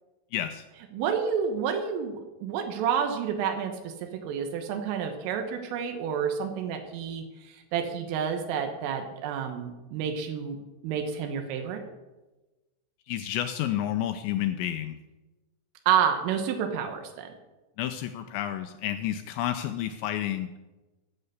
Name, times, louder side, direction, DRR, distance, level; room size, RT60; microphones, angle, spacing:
voice 1, 0.3-0.6 13.1-14.9 17.8-20.5, left 11 dB, 85° left, 8 dB, 2.6 m, -30 dB
voice 2, 0.9-3.9 4.2-10.6 10.8-11.8 15.9-17.3, right 7 dB, 90° right, 5 dB, 3.8 m, -29 dB
13.5 x 6.7 x 8.0 m, 1.1 s
omnidirectional pair, 5.6 m